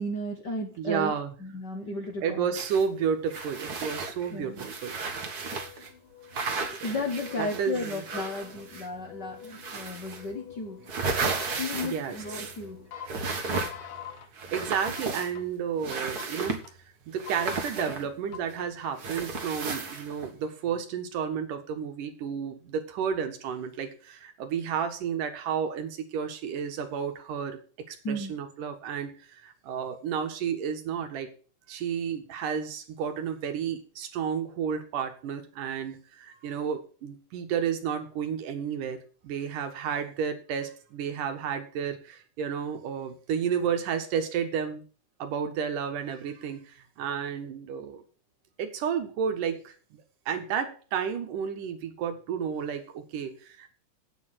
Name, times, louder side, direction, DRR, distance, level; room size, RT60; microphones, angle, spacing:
voice 1, 0.0-1.1 1.4-2.5 4.3-4.7 6.7-10.9 11.5-12.9 28.0-28.3, left 2 dB, 50° left, 4 dB, 1.3 m, -34 dB
voice 2, 0.8-1.3 2.2-5.0 7.4-8.0 11.8-12.5 14.5-16.7 17.1-27.6 27.9-31.3 31.7-44.8 45.2-48.0 48.6-49.7 50.3-53.7, right 7 dB, 85° right, 7 dB, 3.1 m, -31 dB
sound 1, 2.5-2.9 3.3-5.9 6.3-9.0 9.4-10.3 10.6-12.7 13.1-14.0 14.3-15.5 15.8-16.7 17.2-18.6 19.0-20.3, right 4 dB, 45° right, 1.4 m, -34 dB
sound 2, 5.3-14.3 14.7-15.4 15.9-16.7 17.3-17.9 18.3-19.1, left 9 dB, 85° left, 2.9 m, -47 dB
8.9 x 7.6 x 7.5 m, 0.39 s
omnidirectional pair, 3.6 m